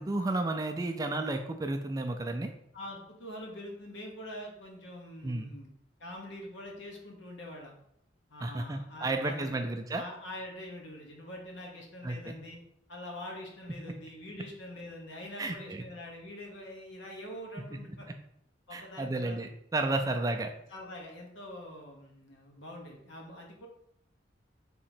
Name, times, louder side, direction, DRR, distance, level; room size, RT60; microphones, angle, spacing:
voice 1, 0.0-2.5 5.2-5.5 8.4-10.0 12.0-12.4 15.4-15.8 17.7-17.8 18.7-20.5, right 2 dB, 20° right, 5 dB, 0.3 m, -32 dB
voice 2, 2.7-5.7 6.0-7.7 8.3-9.7 9.9-12.6 12.9-18.1 18.7-19.4 19.9-20.1 20.7-23.7, left 1 dB, 75° left, 0 dB, 1.1 m, -44 dB
3.6 x 2.9 x 4.3 m, 0.73 s
head